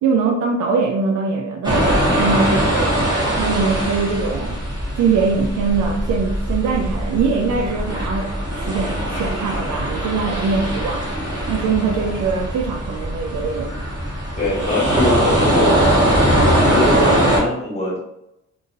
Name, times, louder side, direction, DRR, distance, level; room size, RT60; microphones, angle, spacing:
voice 1, 0.0-4.6 5.0-11.1 11.5-13.7, right 4 dB, 70° right, 2 dB, 0.5 m, -22 dB
sound 1, 1.6-17.4, right 1 dB, 15° right, 1.2 m, -21 dB
voice 2, 14.4-15.8 16.5-18.0, left 1 dB, 20° left, -5 dB, 1.4 m, -22 dB
2.7 x 2.7 x 2.6 m, 0.84 s
cardioid pair, 90°, 30 cm